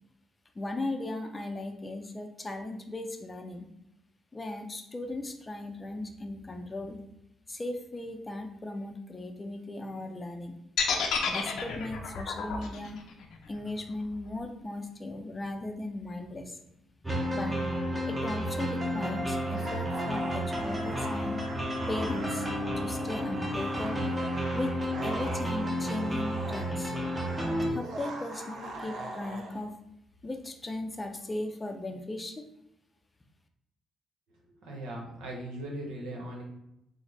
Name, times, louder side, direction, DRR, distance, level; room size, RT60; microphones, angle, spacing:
voice 1, 0.5-3.7 4.3-7.0 7.5-10.6 11.3-13.0 13.5-16.6 17.3-17.6 18.1-21.4 21.9-22.5 22.8-24.0 24.5-24.7 25.0-26.9 27.7-29.8 30.2-32.5, left 2 dB, 20° left, 5 dB, 0.4 m, -37 dB
sound 1, 10.8-14.8, left 6 dB, 75° left, 0.5 m, -31 dB
sound 2, 17.0-27.7, equal, 10° right, 0.7 m, -31 dB
sound 3, 19.4-29.6, right 2 dB, 65° right, 0.7 m, -42 dB
voice 2, 34.6-36.4, right 1 dB, 90° right, -1 dB, 0.9 m, -39 dB
3.7 x 2.1 x 3.3 m, 0.83 s
cardioid pair, 90°, 0 cm